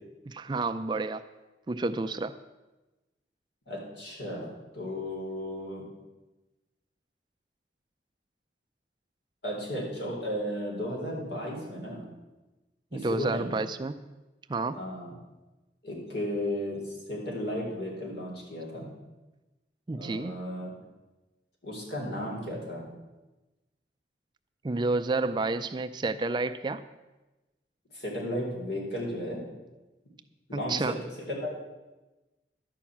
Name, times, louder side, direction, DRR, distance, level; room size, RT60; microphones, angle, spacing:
voice 1, 0.2-1.2 1.7-2.4 12.9-14.1 14.5-14.8 19.9-20.4 24.6-26.8 30.5-31.0, right 3 dB, 25° right, 10 dB, 0.4 m, -30 dB
voice 2, 3.7-5.8 9.4-12.1 12.9-13.5 14.7-15.1 15.8-18.9 19.9-20.7 21.6-22.8 27.9-29.4 30.5-31.6, left 1 dB, 70° left, -2 dB, 4.0 m, -34 dB
12.0 x 5.9 x 8.5 m, 1.1 s
head